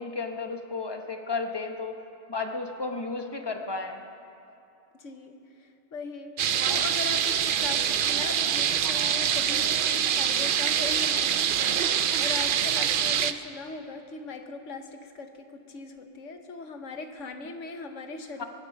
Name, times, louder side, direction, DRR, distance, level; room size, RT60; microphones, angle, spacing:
voice 1, 0.0-1.9 2.3-4.0 18.4-18.5, left 4 dB, 20° left, 4 dB, 1.1 m, -33 dB
voice 2, 5.0-18.4, left 3 dB, 90° left, 6 dB, 1.5 m, -39 dB
sound 1, 6.4-13.3, right 8 dB, 60° right, 0.6 m, -25 dB
23.0 x 10.5 x 5.9 m, 2.8 s
omnidirectional pair, 1.2 m